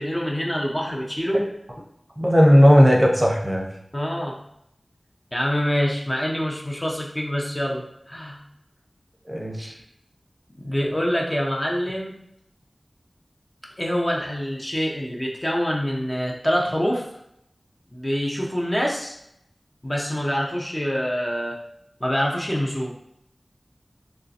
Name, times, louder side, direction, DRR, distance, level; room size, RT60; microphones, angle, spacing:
voice 1, 0.0-1.4 3.9-4.4 5.3-8.4 10.6-12.1 13.8-17.0 17.9-19.2 19.8-21.6 22.0-22.9, equal, 30° left, -1 dB, 0.7 m, -25 dB
voice 2, 2.2-3.7 9.3-9.7, equal, 15° right, 0 dB, 0.7 m, -16 dB
3.6 x 3.0 x 2.8 m, 0.76 s
wide cardioid pair, 40°, 0 cm